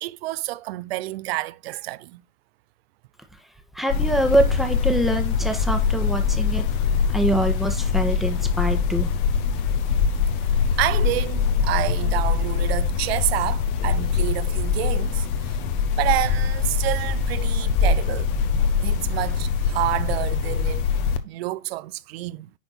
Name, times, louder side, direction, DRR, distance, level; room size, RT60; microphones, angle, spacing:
voice 1, 0.0-2.2 10.8-15.6 16.0-18.4 18.8-20.9 21.2-22.5, right 17 dB, 50° right, 0.7 m, -28 dB
voice 2, 3.7-6.6 7.1-9.1, right 1 dB, ahead, 1.3 m, -24 dB
sound 1, 3.9-21.2, left 6 dB, 40° left, 1.2 m, -23 dB
10.5 x 4.3 x 4.2 m
hypercardioid pair, 130°, 39 cm